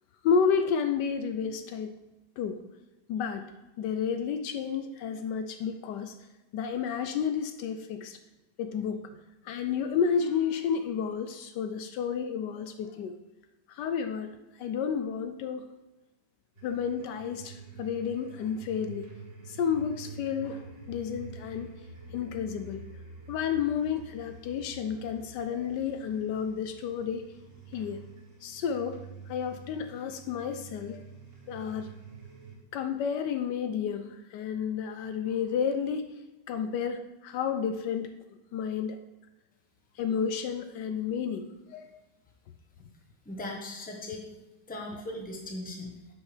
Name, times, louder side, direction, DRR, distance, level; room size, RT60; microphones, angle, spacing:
voice 1, 0.2-1.9 2.4-2.6 3.1-3.4 3.8-6.2 6.5-8.2 8.6-9.2 9.4-13.2 13.7-14.3 14.6-15.6 16.6-19.1 19.5-21.7 22.1-22.8 23.3-27.2 27.7-28.0 28.4-29.0 29.3-31.0 31.5-31.9 32.7-36.1 36.5-38.1 38.5-39.0 40.0-42.0, left 7 dB, 75° left, 8 dB, 1.2 m, -31 dB
sound 1, 16.5-32.5, right 4 dB, 80° right, 2.8 m, -48 dB
voice 2, 43.2-44.3 44.7-45.9, left 1 dB, 5° left, 0 dB, 0.9 m, -38 dB
10.5 x 6.2 x 3.3 m, 1.0 s
omnidirectional pair, 1.9 m